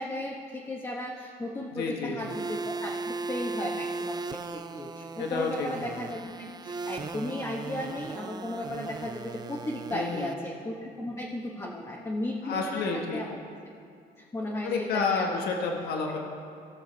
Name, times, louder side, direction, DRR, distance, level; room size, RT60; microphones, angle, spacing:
voice 1, 0.0-12.8 13.1-13.4 14.3-15.5, left 1 dB, 15° left, -3 dB, 1.2 m, -35 dB
voice 2, 1.7-2.2 5.2-5.7 9.9-10.3 12.4-13.2 14.4-16.2, left 4 dB, 70° left, 1 dB, 1.3 m, -30 dB
sound 1, 2.2-10.3, right 3 dB, 25° right, 0.4 m, -37 dB
18.5 x 6.4 x 4.1 m, 2.4 s
cardioid pair, 110°, 17 cm